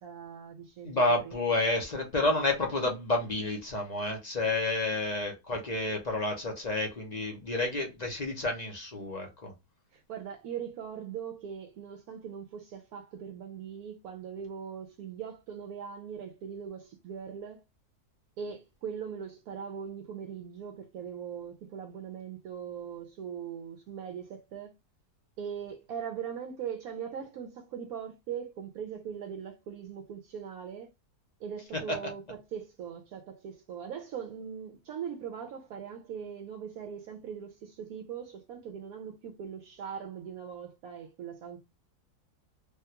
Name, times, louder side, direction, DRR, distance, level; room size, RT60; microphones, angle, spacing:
voice 1, 0.0-1.3 9.9-17.6 18.4-24.7 25.4-30.9 31.4-41.6, right 7 dB, 75° right, 1.0 m, -40 dB
voice 2, 0.8-9.5 31.7-32.0, left 2 dB, 40° left, 0.6 m, -30 dB
3.5 x 2.3 x 2.8 m
omnidirectional pair, 1.7 m